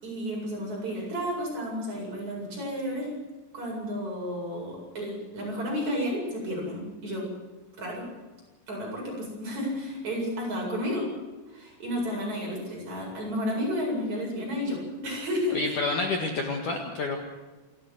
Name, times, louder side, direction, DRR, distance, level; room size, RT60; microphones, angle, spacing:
voice 1, 0.0-3.1 3.5-7.3 7.8-8.1 8.7-11.1 11.5-15.8, equal, 40° right, -2 dB, 9.3 m, -32 dB
voice 2, 15.5-17.2, left 3 dB, 55° left, 3 dB, 2.8 m, -29 dB
28.5 x 13.5 x 7.9 m, 1.2 s
omnidirectional pair, 5.3 m